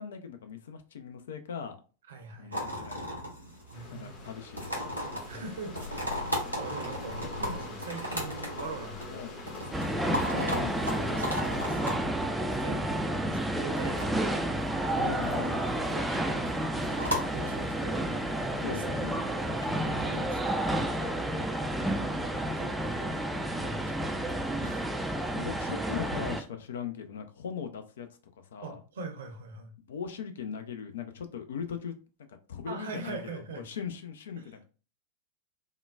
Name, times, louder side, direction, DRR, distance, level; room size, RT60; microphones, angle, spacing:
voice 1, 0.0-1.8 2.4-3.2 3.7-4.7 9.1-9.4 10.3-10.8 15.0-15.7 18.6-19.1 25.4-28.1 28.5-28.8 29.9-31.9 32.5-34.7, left 7 dB, 60° left, 0.4 m, -39 dB
voice 2, 2.1-2.8 3.7-4.3 5.3-10.0 10.7-12.0 12.4-14.4 15.0-15.1 15.4-16.5 17.3-18.1 18.7-20.7 21.0-21.2 22.6-23.2 23.5-24.9 28.6-29.7 32.7-33.7 34.4-34.7, right 3 dB, 60° right, 0.7 m, -43 dB
sound 1, 2.5-19.7, equal, 90° left, 0.9 m, -37 dB
sound 2, 3.5-11.8, left 3 dB, 25° left, 0.8 m, -45 dB
sound 3, 9.7-26.4, right 1 dB, 5° right, 0.3 m, -31 dB
3.6 x 2.1 x 2.3 m
figure-of-eight pair, 90°, 0 cm